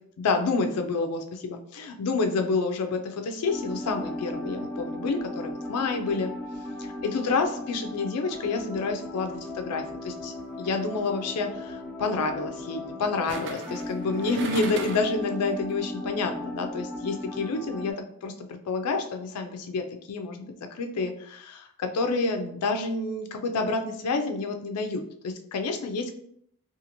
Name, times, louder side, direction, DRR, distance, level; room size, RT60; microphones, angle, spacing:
voice 1, 0.2-6.3 6.8-17.9 18.2-26.1, left 3 dB, 85° left, 5 dB, 0.4 m, -29 dB
sound 1, 3.5-17.9, left 1 dB, 10° left, 0.4 m, -36 dB
sound 2, 10.7-10.9 13.3-15.2 15.6-15.7, right 4 dB, 55° right, 0.4 m, -38 dB
2.5 x 2.4 x 2.8 m, 0.67 s
head